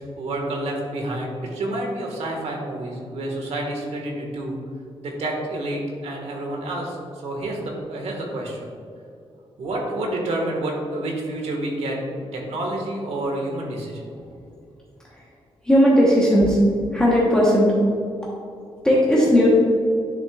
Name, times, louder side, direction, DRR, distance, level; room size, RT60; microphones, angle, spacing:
voice 1, 0.0-4.6 5.0-7.0 7.2-8.7 9.6-12.0 12.3-14.1, right 1 dB, 90° right, 0 dB, 1.6 m, -29 dB
voice 2, 15.6-16.6 16.9-17.7 18.8-19.5, equal, 5° left, -6 dB, 1.0 m, -17 dB
10.0 x 6.4 x 2.4 m, 2.6 s
wide cardioid pair, 175°, 10 cm